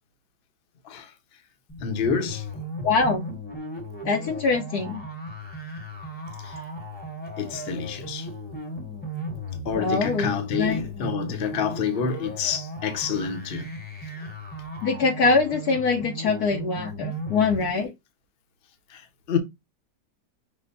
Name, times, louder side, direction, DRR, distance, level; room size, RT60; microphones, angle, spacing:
sound 1, 1.7-17.7, equal, 5° left, 0.8 m, -36 dB
voice 1, 1.8-2.5 6.4-6.6 7.4-8.3 9.6-13.7 18.9-19.4, left 6 dB, 45° left, 0.8 m, -28 dB
voice 2, 2.8-3.2 4.0-5.0 9.8-10.3 10.6-10.8 14.8-17.9, left 4 dB, 65° left, 1.0 m, -23 dB
5.9 x 2.1 x 3.9 m
omnidirectional pair, 2.0 m